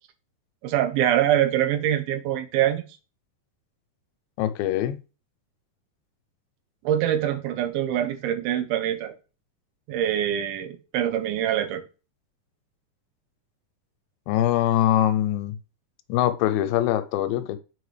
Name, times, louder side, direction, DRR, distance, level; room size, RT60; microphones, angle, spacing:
voice 1, 0.6-2.8 6.8-9.1 9.9-11.8, right 11 dB, 90° right, 2.8 m, -24 dB
voice 2, 4.4-5.0 14.3-15.6 16.1-17.6, left 12 dB, 85° left, 2.3 m, -23 dB
7.9 x 5.1 x 3.2 m
omnidirectional pair, 4.2 m